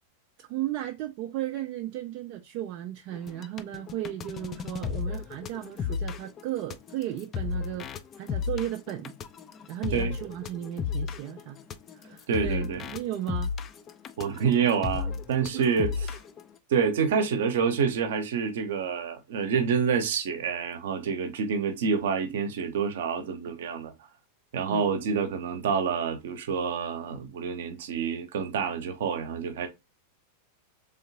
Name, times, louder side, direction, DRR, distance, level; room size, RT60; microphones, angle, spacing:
voice 1, 0.4-7.9 8.2-9.1 9.7-11.6 11.9-13.5 15.5-15.6 24.6-24.8, right 13 dB, 45° right, 0.4 m, -35 dB
sound 1, 3.1-16.4, left 6 dB, 25° left, 0.4 m, -34 dB
voice 2, 12.3-12.8 14.2-16.2 16.7-23.9 24.5-29.7, right 6 dB, 60° right, 0.8 m, -27 dB
3.6 x 3.6 x 2.8 m
figure-of-eight pair, 90°, 0 cm